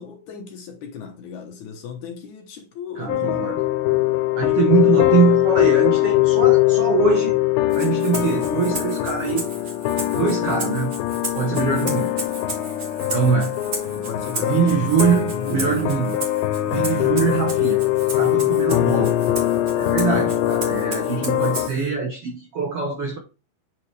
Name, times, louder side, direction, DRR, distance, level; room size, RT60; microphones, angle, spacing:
voice 1, 0.0-3.6 14.0-14.8 15.3-15.8 16.8-17.1, left 7 dB, 65° left, 2.2 m, -36 dB
voice 2, 2.9-3.6 4.4-7.4 7.7-9.5 10.1-10.9 11.3-12.1 13.1-13.5 14.4-16.2 16.6-17.8 18.1-19.1 19.8-23.2, right 6 dB, 90° right, 1.2 m, -23 dB
sound 1, 3.1-21.7, left 15 dB, 90° left, 2.6 m, -21 dB
Rattle (instrument), 7.7-21.9, right 3 dB, 45° right, 1.3 m, -35 dB
8.6 x 4.3 x 3.3 m
omnidirectional pair, 4.2 m